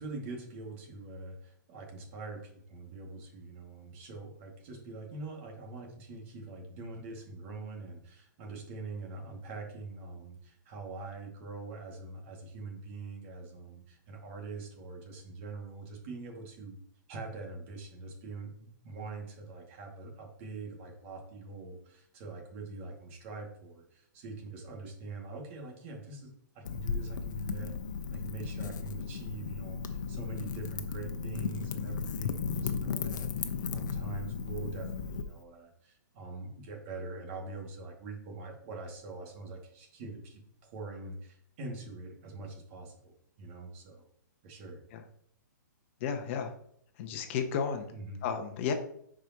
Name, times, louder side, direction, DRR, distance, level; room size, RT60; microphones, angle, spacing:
voice 1, 0.0-16.8 17.1-27.8 28.1-44.1 44.4-44.8 47.9-48.3, right 3 dB, 40° right, 1 dB, 2.2 m, -44 dB
Wind / Fire, 26.6-35.2, left 5 dB, 65° left, 0.9 m, -35 dB
voice 2, 46.0-46.5 47.0-47.9 48.2-48.7, left 6 dB, 40° left, 5 dB, 1.0 m, -32 dB
10.0 x 5.0 x 3.0 m, 0.68 s
hypercardioid pair, 145°, 11 cm